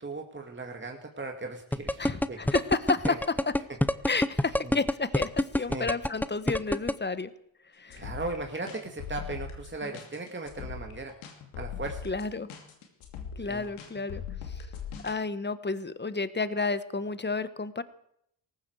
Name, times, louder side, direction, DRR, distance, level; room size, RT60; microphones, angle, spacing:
voice 1, 0.0-2.4 3.1-3.2 5.7-5.9 7.9-11.1 11.6-12.0 13.5-13.7, right 3 dB, 25° right, 3 dB, 2.3 m, -37 dB
sound 1, 1.7-6.9, left 1 dB, 5° left, 0.8 m, -25 dB
voice 2, 2.0-3.2 4.1-7.3 7.8-8.0 12.0-12.5 13.4-14.2 14.5-14.6 15.0-17.8, left 4 dB, 20° left, 13 dB, 1.4 m, -31 dB
sound 2, 7.9-15.2, left 7 dB, 90° left, 2.7 m, -40 dB
18.5 x 15.0 x 4.9 m, 0.72 s
supercardioid pair, 50°, 48 cm